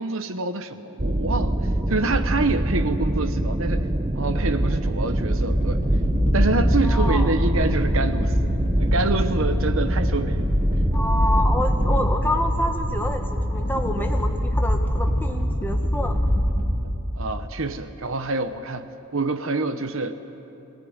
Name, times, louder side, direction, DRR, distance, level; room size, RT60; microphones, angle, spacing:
voice 1, 0.0-1.6 1.9-3.9 4.2-5.8 6.3-8.4 8.8-10.5 17.2-20.2, right 3 dB, 60° right, 10 dB, 1.0 m, -26 dB
sound 1, 1.0-12.1, right 1 dB, 25° right, 0.9 m, -25 dB
sound 2, 5.4-17.0, equal, 40° left, 3.9 m, -24 dB
voice 2, 6.8-7.3 10.9-16.1, left 1 dB, 10° left, 3 dB, 1.5 m, -28 dB
22.0 x 18.0 x 9.6 m, 2.9 s
head